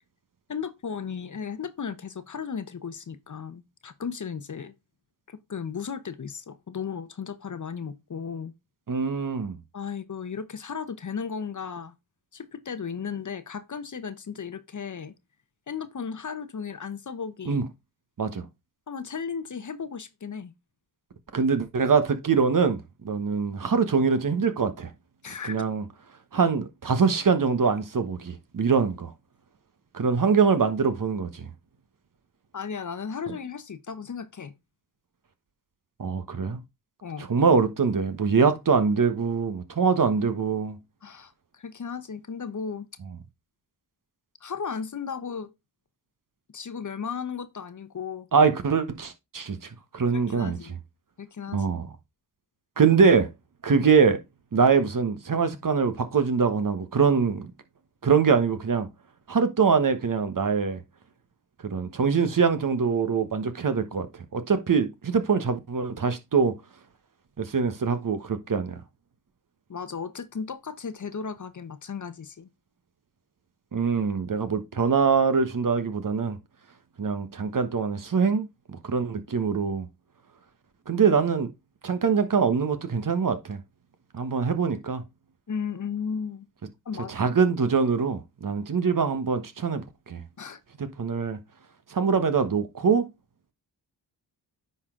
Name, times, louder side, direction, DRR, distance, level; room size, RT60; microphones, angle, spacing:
voice 1, 0.5-4.7 5.3-8.5 9.7-11.9 12.3-15.1 15.7-17.6 18.9-20.5 25.2-25.6 32.5-34.5 37.0-37.3 41.0-42.9 44.4-45.5 46.5-48.3 50.1-50.8 51.2-51.6 69.7-72.5 74.8-74.9 85.5-86.4 86.9-87.1 90.4-90.6, left 6 dB, 45° left, 0.9 m, -35 dB
voice 2, 8.9-9.6 17.5-17.6 18.2-18.4 21.3-22.8 23.0-24.9 25.5-25.8 26.3-29.1 29.9-31.5 36.0-36.6 37.3-40.8 48.3-50.6 51.5-51.9 52.8-53.3 53.6-54.2 54.5-57.5 58.0-58.9 59.3-60.8 61.6-64.1 64.3-66.6 67.4-68.7 73.7-76.4 77.0-79.9 80.9-81.5 81.8-83.6 84.1-85.0 87.1-90.2 90.8-91.4 91.9-93.1, right 5 dB, 50° right, 1.2 m, -23 dB
9.7 x 4.1 x 3.7 m
cardioid pair, 50°, 43 cm